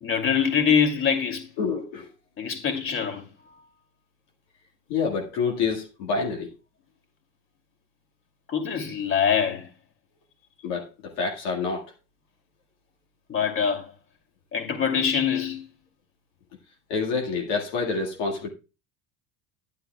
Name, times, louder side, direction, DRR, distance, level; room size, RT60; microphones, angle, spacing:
voice 1, 0.0-1.5 2.4-3.2 8.5-9.7 13.3-13.9 14.5-15.6, left 7 dB, 40° left, 2.7 m, -24 dB
voice 2, 1.6-2.1 4.9-6.5 10.6-11.9 16.9-18.5, left 4 dB, 75° left, 1.9 m, -27 dB
11.5 x 9.7 x 2.3 m
supercardioid pair, 85°, 33 cm